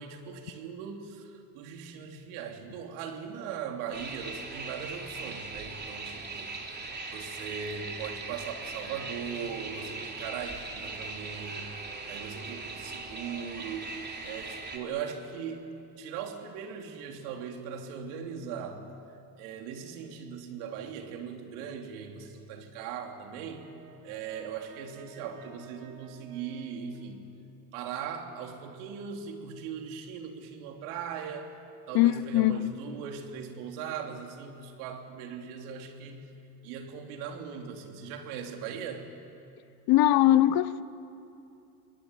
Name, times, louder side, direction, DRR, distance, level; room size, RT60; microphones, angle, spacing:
voice 1, 0.0-6.5 7.1-11.7 12.1-15.6 16.0-18.8 19.4-23.7 24.0-27.2 27.7-31.5 31.9-36.3 36.6-39.1, right 7 dB, 75° right, 3.3 m, -39 dB
sound 1, 3.9-14.8, right 3 dB, 20° right, 3.7 m, -40 dB
Brass instrument, 22.9-27.3, right 6 dB, 50° right, 5.1 m, -54 dB
voice 2, 31.9-32.8 39.9-40.8, left 14 dB, 55° left, 1.0 m, -22 dB
26.0 x 21.5 x 9.4 m
supercardioid pair, 95°, 45 cm